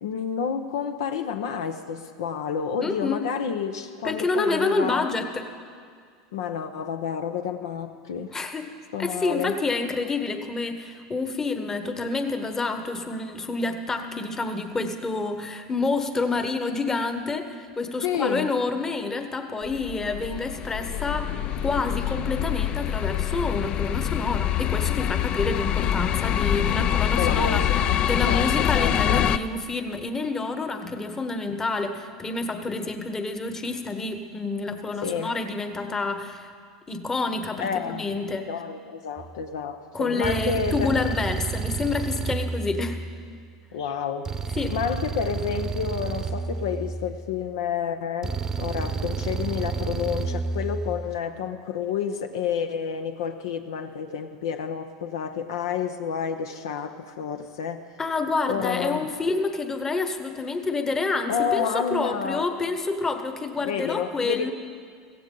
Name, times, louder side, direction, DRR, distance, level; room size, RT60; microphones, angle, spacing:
voice 1, 0.0-5.1 6.3-8.3 8.9-9.6 18.0-18.5 27.2-29.3 35.0-35.4 37.6-38.0 38.5-41.0 43.7-44.3 44.7-57.9 58.5-59.1 61.3-62.5 63.6-64.5, left 7 dB, 75° left, 8 dB, 0.7 m, -29 dB
voice 2, 2.8-3.3 4.0-5.4 8.3-8.7 9.0-21.3 21.6-27.7 28.0-36.5 36.9-38.5 39.9-43.0 44.6-44.8 58.0-64.5, left 3 dB, 20° left, 7 dB, 1.2 m, -28 dB
sound 1, 19.6-29.4, left 11 dB, 45° left, 0.5 m, -25 dB
sound 2, 39.2-39.5 40.2-43.5 44.3-47.5 48.2-51.2, right 5 dB, 25° right, 0.8 m, -31 dB
16.0 x 15.0 x 3.9 m, 2.1 s
hypercardioid pair, 90°, 2 cm